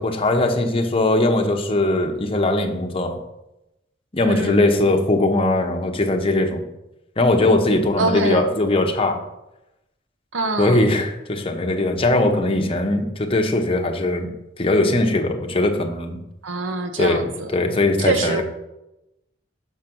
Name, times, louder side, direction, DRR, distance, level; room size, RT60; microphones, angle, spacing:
voice 1, 0.0-3.2 4.1-6.6 7.2-9.2 10.6-14.3 14.6-16.2 17.0-17.3 17.5-18.4, left 2 dB, 30° left, 3 dB, 0.9 m, -20 dB
voice 2, 4.2-4.6 8.0-8.5 10.3-10.8 16.4-17.5 18.0-18.4, right 3 dB, 85° right, 7 dB, 1.0 m, -24 dB
6.6 x 5.1 x 6.1 m, 0.91 s
head